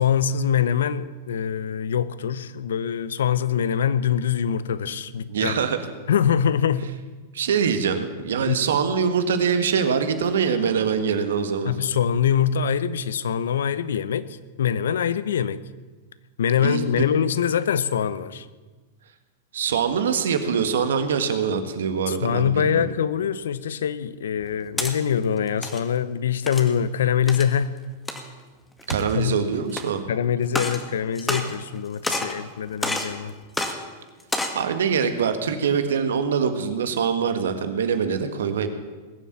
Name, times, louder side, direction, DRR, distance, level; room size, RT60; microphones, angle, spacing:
voice 1, 0.0-5.6 6.1-6.9 8.4-8.6 11.7-14.3 14.6-15.6 16.4-18.5 22.1-27.7 29.1-29.4 30.1-33.3, left 8 dB, 80° left, 16 dB, 0.8 m, -24 dB
voice 2, 5.3-5.8 7.3-11.7 16.6-17.0 19.5-22.9 28.9-30.1 34.5-38.7, right 6 dB, 80° right, 8 dB, 1.7 m, -24 dB
sound 1, 24.4-24.9 25.5-25.8 26.5-26.7 27.3-27.5 28.1-28.2 28.8-29.2 29.7-29.8 30.5-30.8 31.2-31.8 32.0-32.4 32.8-33.1 33.5-33.7 34.2-34.6, left 2 dB, 10° left, 1.9 m, -28 dB
20.0 x 7.4 x 8.6 m, 1.3 s
hypercardioid pair, 110°, 0 cm